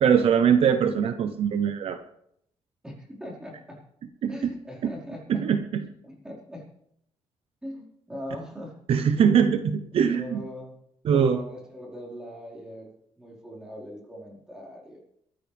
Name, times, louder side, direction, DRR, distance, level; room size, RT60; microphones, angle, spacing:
voice 1, 0.0-2.0 4.2-4.5 4.8-4.9 5.3-5.8 8.9-10.4 11.0-11.4, right 7 dB, 55° right, 9 dB, 0.8 m, -22 dB
voice 2, 2.8-3.8 4.3-5.4 6.0-6.7 7.6-8.8 10.1-10.8 11.0-12.9 13.2-15.0, equal, 5° right, -4 dB, 5.0 m, -40 dB
22.5 x 13.5 x 3.5 m, 0.74 s
cardioid pair, 160°, 11 cm